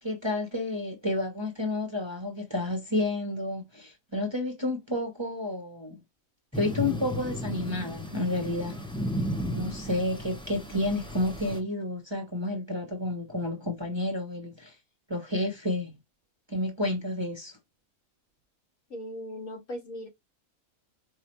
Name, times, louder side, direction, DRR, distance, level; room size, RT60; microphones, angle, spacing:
voice 1, 0.0-6.0 6.5-8.8 9.5-14.7 15.1-16.0 16.5-17.6, left 2 dB, 20° right, 1.0 m, -30 dB
sound 1, 6.5-11.6, left 1 dB, 5° left, 0.6 m, -34 dB
voice 2, 18.9-20.1, equal, 70° left, 2.3 m, -38 dB
4.7 x 2.4 x 2.9 m
omnidirectional pair, 1.4 m